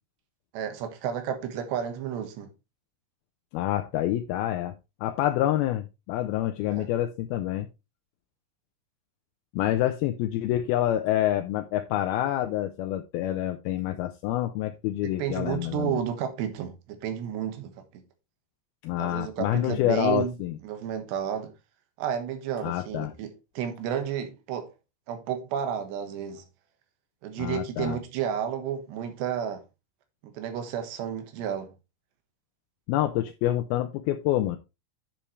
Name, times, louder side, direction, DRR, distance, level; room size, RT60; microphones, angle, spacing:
voice 1, 0.5-2.5 6.7-6.9 15.2-18.0 19.0-20.4 20.6-21.5 22.0-24.7 25.1-26.4 27.2-29.6 30.2-31.7, right 8 dB, 90° right, 3.6 m, -31 dB
voice 2, 3.5-4.7 5.0-7.7 9.5-16.0 18.8-20.6 22.6-23.1 27.4-28.0 32.9-34.6, left 13 dB, 80° left, 2.4 m, -27 dB
10.5 x 7.2 x 3.2 m
omnidirectional pair, 4.8 m